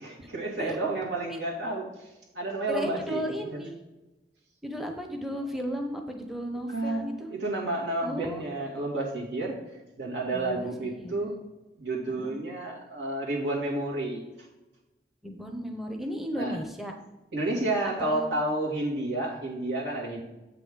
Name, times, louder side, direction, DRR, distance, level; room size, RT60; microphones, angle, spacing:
voice 1, 0.0-1.9 2.3-3.6 6.7-9.6 10.0-11.4 11.8-14.2 16.4-16.6 17.3-20.2, right 2 dB, 75° right, -4 dB, 2.5 m, -30 dB
voice 2, 2.7-3.7 4.6-7.3 8.0-8.4 10.3-11.1 12.1-12.3 15.2-16.9 18.0-18.3, equal, ahead, 4 dB, 0.8 m, -35 dB
8.0 x 5.9 x 3.8 m, 1.0 s
head